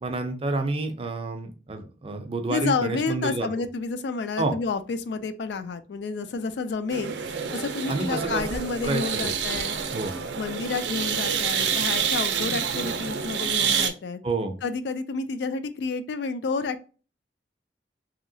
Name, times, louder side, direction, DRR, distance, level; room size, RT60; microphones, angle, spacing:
voice 1, 0.0-3.5 4.4-4.5 7.9-9.3 9.9-10.1 14.2-14.6, right 3 dB, 35° right, 6 dB, 0.5 m, -29 dB
voice 2, 2.5-7.1 7.5-9.8 10.3-14.2 14.6-16.9, left 4 dB, 70° left, 11 dB, 0.4 m, -30 dB
sound 1, 6.9-13.9, right 7 dB, 85° right, 0.5 m, -28 dB
3.0 x 2.8 x 2.6 m, 0.35 s
head